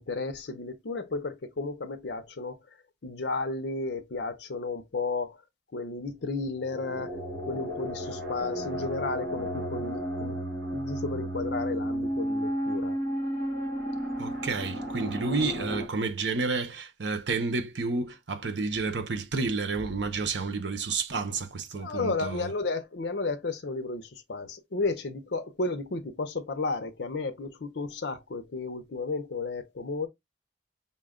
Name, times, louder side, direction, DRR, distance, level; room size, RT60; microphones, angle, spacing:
voice 1, 0.0-2.6 3.0-5.4 5.7-7.1 7.5-10.4 10.7-13.0 21.7-30.1, left 3 dB, 75° left, 0.6 m, -33 dB
sound 1, 6.5-15.9, equal, 55° right, 1.6 m, -33 dB
voice 2, 14.2-22.5, right 4 dB, 80° right, 0.8 m, -30 dB
5.6 x 2.2 x 3.6 m
head